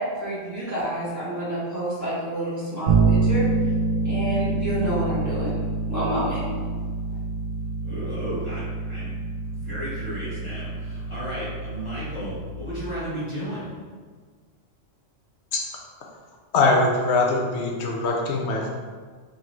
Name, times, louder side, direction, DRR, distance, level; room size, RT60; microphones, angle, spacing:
voice 1, 0.2-3.4 4.0-5.5 5.9-6.4, right 1 dB, 15° right, -11 dB, 1.2 m, -28 dB
Bass guitar, 2.9-12.7, right 4 dB, 65° right, 0.8 m, -26 dB
voice 2, 7.8-9.2 9.5-13.7, equal, 25° left, -11 dB, 1.4 m, -34 dB
voice 3, 16.5-18.7, left 3 dB, 70° left, 0 dB, 0.8 m, -22 dB
3.7 x 2.9 x 3.0 m, 1.6 s
omnidirectional pair, 1.3 m